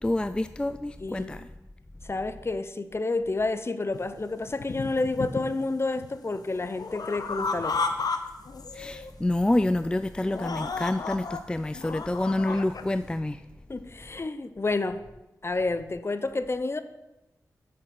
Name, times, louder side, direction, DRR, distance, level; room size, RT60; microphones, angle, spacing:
voice 1, 0.0-1.5 8.7-13.4, left 1 dB, 15° left, 12 dB, 0.3 m, -27 dB
voice 2, 1.0-1.4 2.0-7.8 13.7-15.0 15.4-16.8, left 3 dB, 40° left, 12 dB, 0.7 m, -29 dB
sound 1, 3.9-4.0 4.5-5.6 6.0-8.2 8.4-9.1 9.5-9.7 10.2-11.4 11.7-12.8, left 4 dB, 75° left, 0.7 m, -33 dB
8.1 x 6.4 x 5.9 m, 1.0 s
cardioid pair, 45°, 7 cm